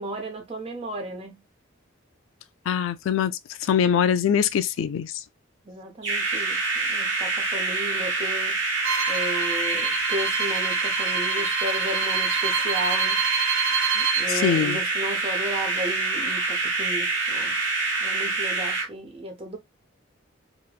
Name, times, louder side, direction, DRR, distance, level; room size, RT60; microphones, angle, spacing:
voice 1, 0.0-1.4 5.7-8.6 9.1-13.2 13.9-17.6 18.0-19.6, right 1 dB, 30° right, 0.6 m, -34 dB
voice 2, 2.7-3.3 3.6-5.1 14.3-14.8, left 8 dB, 75° left, 0.3 m, -23 dB
sound 1, 6.0-18.9, right 3 dB, 60° right, 1.1 m, -26 dB
Bowed string instrument, 8.8-14.3, right 7 dB, 75° right, 0.5 m, -29 dB
2.9 x 2.1 x 2.3 m
head